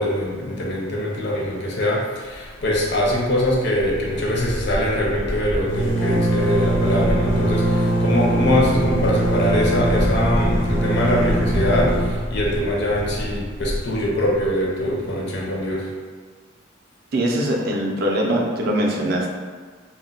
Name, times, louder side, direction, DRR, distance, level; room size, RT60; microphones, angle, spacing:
voice 1, 0.0-15.9, left 1 dB, 55° left, -3 dB, 0.6 m, -23 dB
sound 1, 2.6-3.1 3.4-3.5 3.8-14.5, right 1 dB, 80° left, 0.9 m, -22 dB
voice 2, 17.1-19.3, right 1 dB, 50° right, 0 dB, 0.4 m, -22 dB
2.2 x 2.1 x 3.7 m, 1.5 s
head